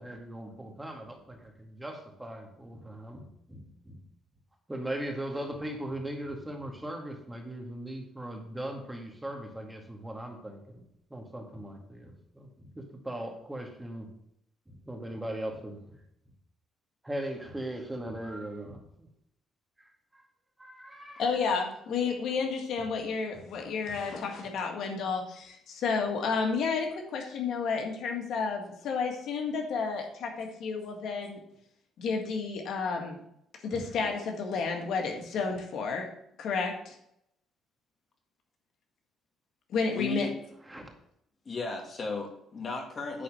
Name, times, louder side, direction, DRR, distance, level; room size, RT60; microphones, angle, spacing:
voice 1, 0.0-4.0 4.7-10.8 11.1-14.1 14.7-16.0 17.0-19.1 19.8-19.9 20.1-20.2 20.6-21.2 23.3-23.4 23.9-24.0 33.7-33.9 40.7-40.9, right 1 dB, 10° right, 2 dB, 2.1 m, -39 dB
voice 2, 21.2-31.4 32.0-33.2 33.6-36.1 36.4-37.0 39.7-40.3, left 5 dB, 70° left, 3 dB, 1.8 m, -31 dB
voice 3, 39.9-40.4 41.5-43.2, left 3 dB, 40° left, 2 dB, 2.4 m, -35 dB
10.0 x 4.3 x 7.7 m, 0.74 s
cardioid pair, 95°, 0 cm